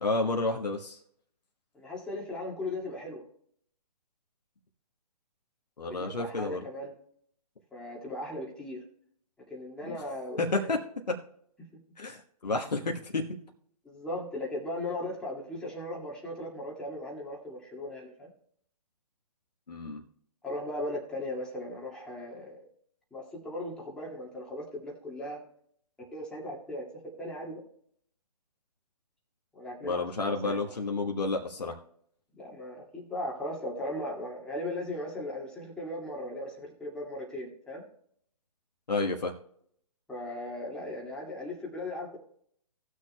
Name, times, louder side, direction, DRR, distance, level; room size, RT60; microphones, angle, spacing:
voice 1, 0.0-1.0 5.8-6.6 9.8-10.0 10.4-10.8 11.1-11.2 12.0-13.2 19.7-20.0 29.8-31.8 38.9-39.3, left 3 dB, 85° left, 1 dB, 1.2 m, -30 dB
voice 2, 1.7-3.2 5.8-6.9 7.7-8.8 9.5-10.7 13.8-18.3 20.4-22.6 23.1-25.4 26.1-27.6 29.5-30.1 30.4-30.8 32.3-37.8 40.1-42.2, left 1 dB, 5° left, -4 dB, 2.1 m, -37 dB
18.5 x 6.5 x 2.2 m, 0.66 s
hypercardioid pair, 145°, 21 cm